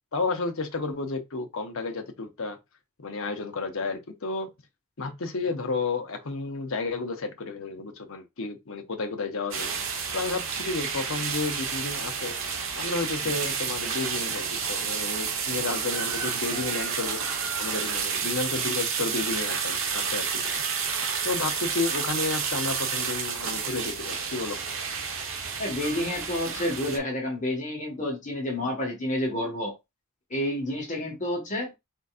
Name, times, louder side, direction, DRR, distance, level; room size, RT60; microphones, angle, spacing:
voice 1, 0.1-2.6 3.0-4.5 5.0-9.7 10.1-12.3 12.8-17.2 17.6-20.6 21.2-24.6, left 3 dB, 65° left, 0.9 m, -32 dB
sound 1, 9.5-27.0, right 6 dB, 65° right, 1.0 m, -30 dB
voice 2, 25.6-29.7 30.3-31.7, left 1 dB, 35° left, 1.5 m, -29 dB
4.5 x 4.0 x 2.4 m
head